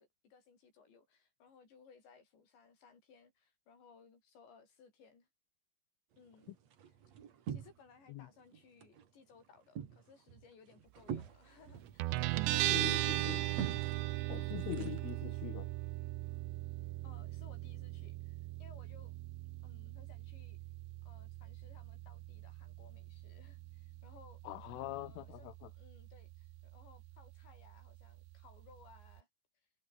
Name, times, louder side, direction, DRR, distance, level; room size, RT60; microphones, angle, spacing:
voice 1, 0.0-5.3 6.2-6.5 7.5-13.4 17.0-19.1 19.6-20.6 21.0-24.4 24.8-25.5 25.8-29.3, left 5 dB, 60° left, 8.6 m, -62 dB
sound 1, 6.1-8.1 8.4-9.1 9.4-15.4, right 8 dB, 50° right, 2.3 m, -46 dB
Guitar, 12.0-29.2, right 19 dB, 75° right, 2.9 m, -39 dB
voice 2, 12.7-13.5 14.3-15.7 24.5-25.7, left 17 dB, 85° left, 3.6 m, -43 dB
omnidirectional pair, 5.7 m